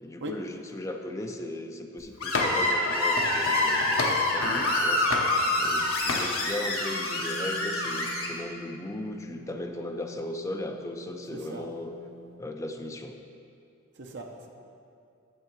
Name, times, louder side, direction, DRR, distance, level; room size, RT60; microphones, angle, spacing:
voice 1, 0.0-5.1 5.6-11.9 12.4-13.2, left 1 dB, 15° left, 4 dB, 0.4 m, -37 dB
Screech, 2.2-8.3, left 2 dB, 85° left, 1.5 m, -26 dB
sound 1, 2.3-2.8 3.2-4.7 5.1-5.8 6.1-6.3, left 3 dB, 70° left, 0.8 m, -32 dB
sound 2, 6.9-12.4, right 1 dB, 40° left, 2.3 m, -47 dB
voice 2, 11.3-11.7 13.9-14.5, right 1 dB, 55° right, 1 dB, 0.7 m, -39 dB
10.5 x 7.2 x 4.6 m, 2.5 s
head